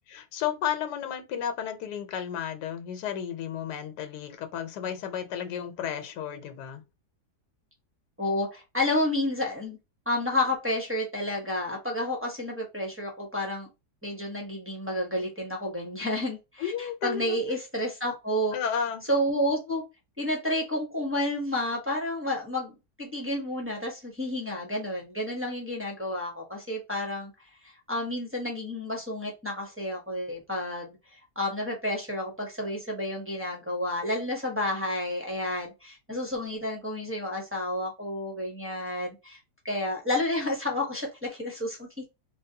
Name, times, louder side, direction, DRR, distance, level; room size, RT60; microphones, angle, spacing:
voice 1, 0.1-6.8 16.6-17.4 18.5-19.1, left 8 dB, 90° left, 1.3 m, -33 dB
voice 2, 8.2-9.8 10.1-13.7 14.0-18.5 19.1-19.8 20.2-22.7 23.0-27.3 27.6-31.0 31.4-39.4 39.6-41.9, left 1 dB, 15° right, 0.5 m, -30 dB
3.4 x 2.3 x 2.6 m
omnidirectional pair, 1.7 m